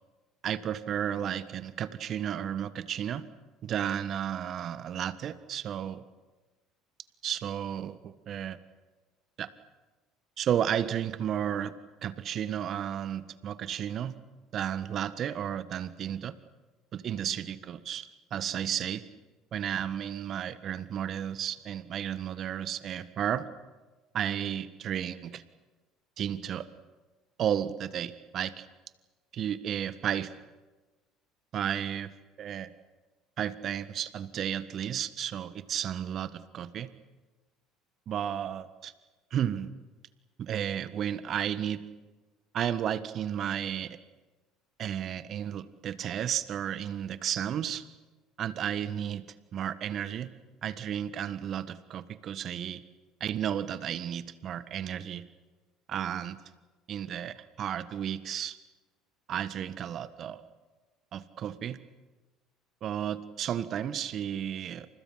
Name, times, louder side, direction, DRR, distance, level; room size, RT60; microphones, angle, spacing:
voice 1, 0.4-3.2 3.6-6.0 7.2-8.6 9.4-9.5 10.4-11.8 12.0-14.2 14.5-16.3 16.9-19.0 19.5-23.5 24.1-25.4 26.2-26.7 27.4-28.7 29.3-30.3 31.5-32.1 32.4-32.7 33.4-36.9 38.1-38.9 39.3-39.7 40.4-41.8 42.5-44.0 44.8-47.8 48.4-49.2 49.5-50.3 50.6-52.8 53.2-55.2 55.9-56.4 56.9-58.6 59.3-60.4 61.1-61.8 62.8-64.9, right 9 dB, 50° right, 13 dB, 1.6 m, -33 dB
29.0 x 27.0 x 5.9 m, 1.2 s
hypercardioid pair, 65°, 0 cm